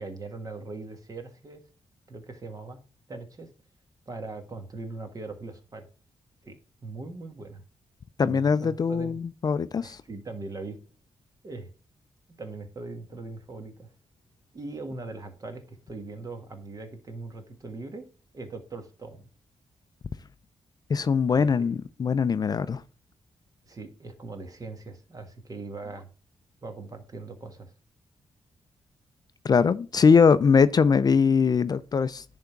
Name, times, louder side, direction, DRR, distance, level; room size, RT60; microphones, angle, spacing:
voice 1, 0.0-1.6 2.1-2.8 3.1-3.5 4.1-5.8 6.4-6.5 6.8-7.6 8.2-9.2 9.8-10.8 11.4-11.7 12.4-13.9 14.5-18.0 18.3-19.3 21.4-21.7 23.6-26.1 26.6-27.7, right 3 dB, 35° right, 1.5 m, -40 dB
voice 2, 8.2-10.0 20.9-22.8 29.4-32.2, left 5 dB, 40° left, 0.4 m, -21 dB
10.5 x 3.5 x 5.8 m
cardioid pair, 110°, 10 cm